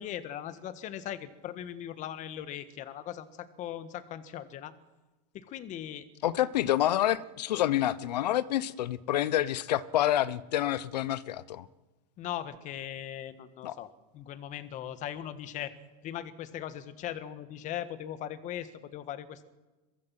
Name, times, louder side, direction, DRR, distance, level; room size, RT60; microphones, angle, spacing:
voice 1, 0.0-4.7 5.3-6.1 12.2-15.7 16.0-19.4, left 11 dB, 35° left, 1.7 m, -39 dB
voice 2, 6.2-11.7 13.6-13.7, left 13 dB, 90° left, 1.0 m, -28 dB
23.5 x 21.5 x 6.0 m
supercardioid pair, 135°, 20 cm